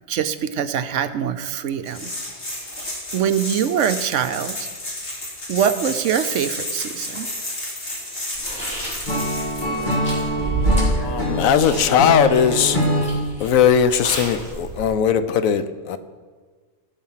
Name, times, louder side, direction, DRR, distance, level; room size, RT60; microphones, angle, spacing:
voice 1, 0.1-2.1 3.1-4.7 5.5-7.3, right 8 dB, 70° right, 11 dB, 0.9 m, -23 dB
sound 1, 1.9-9.9, left 1 dB, 50° left, 2.6 m, -32 dB
Chewing mastication, 8.3-14.9, right 1 dB, 5° left, 4.1 m, -28 dB
Acoustic guitar / Strum, 9.1-13.2, equal, 35° left, 2.2 m, -24 dB
voice 2, 10.9-12.8 13.4-16.0, left 8 dB, 80° left, 11 dB, 1.1 m, -19 dB
16.0 x 7.2 x 5.7 m, 1.5 s
omnidirectional pair, 1.4 m